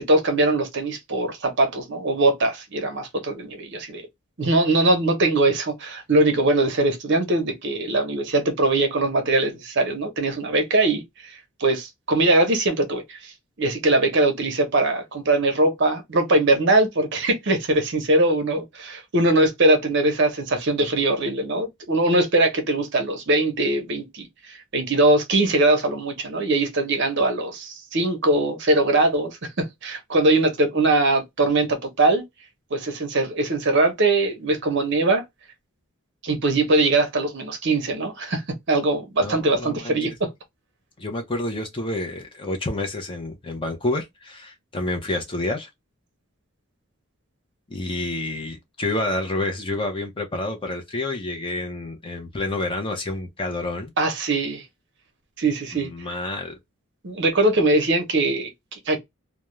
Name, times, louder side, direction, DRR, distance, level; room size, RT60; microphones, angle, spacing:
voice 1, 0.0-4.0 4.4-13.3 13.6-32.2 32.7-35.2 36.2-38.4 38.7-40.3 54.0-54.6 55.4-55.9 57.0-59.0, right 2 dB, 50° right, 0.7 m, -21 dB
voice 2, 39.2-40.2 41.0-45.7 47.7-53.9 55.7-56.6, left 2 dB, 25° left, 0.5 m, -29 dB
2.3 x 2.1 x 3.0 m
head